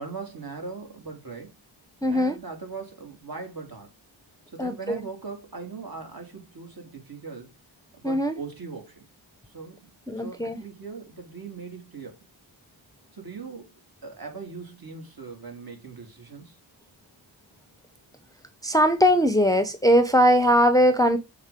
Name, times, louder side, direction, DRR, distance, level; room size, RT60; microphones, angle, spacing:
voice 1, 0.0-1.5 2.1-3.9 4.5-7.5 7.9-9.1 9.5-9.9 10.2-12.3 13.1-16.6, right 4 dB, 45° right, 3.4 m, -40 dB
voice 2, 2.0-2.4 4.6-5.0 8.0-8.4 10.1-10.6 18.6-21.2, equal, 5° left, 0.9 m, -20 dB
7.1 x 4.2 x 5.3 m
cardioid pair, 55°, 48 cm